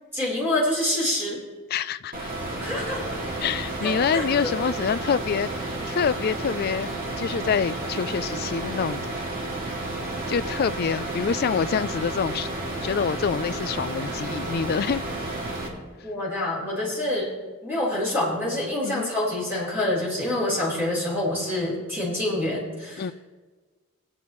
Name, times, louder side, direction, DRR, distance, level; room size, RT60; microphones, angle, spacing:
voice 1, 0.1-1.4 2.6-3.0 3.8-4.5 16.0-17.3 17.6-23.1, left 1 dB, 10° right, -6 dB, 3.8 m, -26 dB
voice 2, 1.7-2.3 3.4-6.9 7.2-9.1 10.3-12.5 12.8-15.0 18.8-19.1 23.0-23.1, left 6 dB, 45° left, 15 dB, 0.3 m, -26 dB
sound 1, 2.1-15.7, right 2 dB, 40° right, 2.3 m, -31 dB
21.0 x 8.7 x 3.1 m, 1.4 s
head